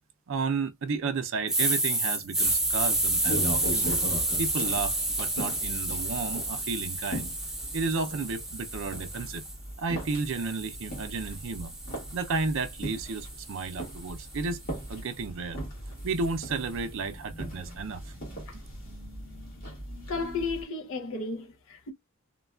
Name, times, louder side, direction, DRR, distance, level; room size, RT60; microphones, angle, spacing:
voice 1, 0.3-4.0 4.4-7.3 7.7-9.4 9.8-11.7 12.1-14.6 14.9-15.6 16.0-18.0 18.5-18.6, right 4 dB, 60° right, 0.5 m, -32 dB
sound 1, 1.5-9.5 10.0-14.2, right 2 dB, ahead, 0.5 m, -30 dB
sound 2, 2.4-20.6, right 1 dB, 40° left, 1.6 m, -39 dB
voice 2, 20.1-21.9, left 4 dB, 65° left, 0.6 m, -33 dB
3.1 x 2.2 x 2.3 m
head